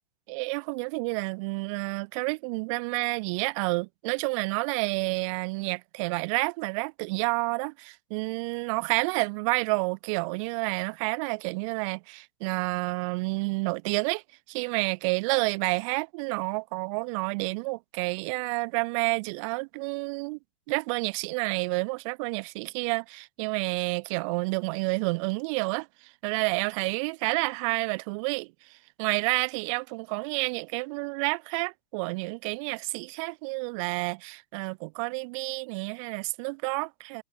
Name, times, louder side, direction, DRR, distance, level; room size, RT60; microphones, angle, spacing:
voice 1, 0.3-14.2 14.5-20.4 20.7-37.2, right 29 dB, 55° right, 1.4 m, -29 dB
hypercardioid pair, 100°, 19 cm